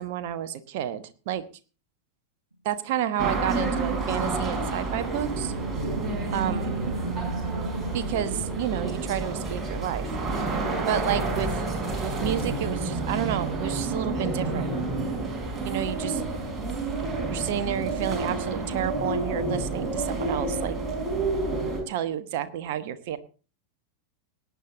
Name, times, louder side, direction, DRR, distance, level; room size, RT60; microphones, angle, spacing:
voice 1, 0.0-1.4 2.6-5.5 6.3-6.8 7.9-10.1 10.9-11.5 12.0-14.7 15.6-16.2 17.3-20.8 21.9-23.2, right 10 dB, 50° right, 10 dB, 1.2 m, -30 dB
sound 1, 3.2-21.8, right 3 dB, 15° right, 5.1 m, -29 dB
sound 2, 5.4-10.7, right 3 dB, 80° right, 1.4 m, -34 dB
18.5 x 9.4 x 3.9 m, 0.35 s
figure-of-eight pair, 90°, 0 cm